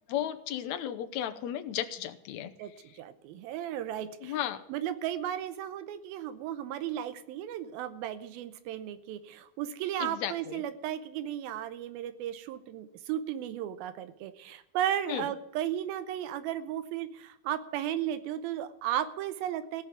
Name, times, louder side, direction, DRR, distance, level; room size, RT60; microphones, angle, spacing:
voice 1, 0.1-2.5 4.2-4.6 10.0-10.6 15.1-15.3, left 11 dB, 75° left, 8 dB, 1.7 m, -34 dB
voice 2, 2.6-4.4 4.7-19.8, right 11 dB, 90° right, 11 dB, 2.6 m, -35 dB
17.0 x 5.8 x 9.3 m, 0.84 s
omnidirectional pair, 4.1 m